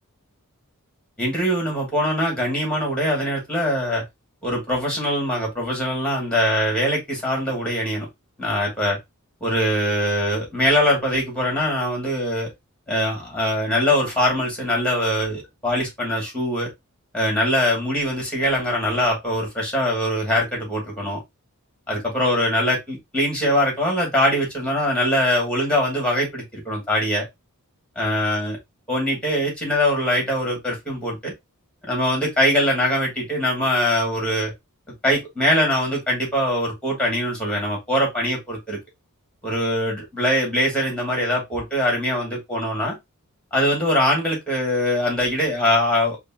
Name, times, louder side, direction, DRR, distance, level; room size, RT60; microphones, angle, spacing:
voice 1, 1.2-4.0 4.4-8.1 8.4-9.0 9.4-12.5 12.9-16.7 17.1-21.2 21.9-27.3 28.0-28.6 28.9-31.3 31.8-34.5 35.0-38.8 39.4-42.9 43.5-46.2, equal, 5° left, 2.6 m, -22 dB
5.1 x 2.6 x 3.0 m
head